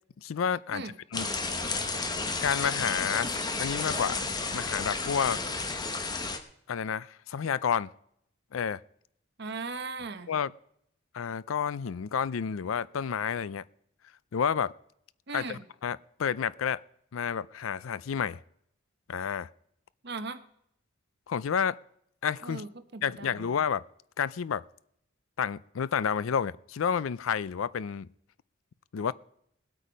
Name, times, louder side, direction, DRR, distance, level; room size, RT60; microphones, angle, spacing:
voice 1, 0.2-0.8 1.1-1.3 2.4-4.3 4.5-5.4 6.7-7.9 8.5-8.8 10.3-10.5 11.1-13.6 14.3-14.7 15.3-16.8 17.1-18.4 19.1-19.5 21.3-21.8 22.2-22.6 23.0-23.8 24.2-24.6 25.4-28.1 28.9-29.1, left 7 dB, 90° left, 20 dB, 0.4 m, -30 dB
sound 1, 1.1-6.4, left 3 dB, 20° left, 1.0 m, -32 dB
voice 2, 9.4-10.3 15.3-15.6 20.0-20.4 22.4-23.5, right 3 dB, 55° right, 10 dB, 1.0 m, -38 dB
19.5 x 8.3 x 5.1 m, 0.72 s
head